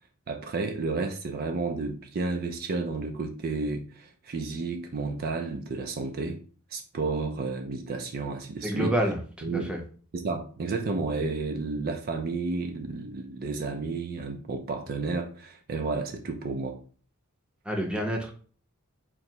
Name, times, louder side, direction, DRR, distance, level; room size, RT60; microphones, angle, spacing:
voice 1, 0.3-6.4 6.7-8.9 9.4-9.7 10.1-16.8, right 3 dB, 45° right, 0.4 m, -31 dB
voice 2, 8.6-9.8 17.6-18.3, right 1 dB, 5° right, 0.7 m, -28 dB
3.8 x 2.1 x 4.4 m
head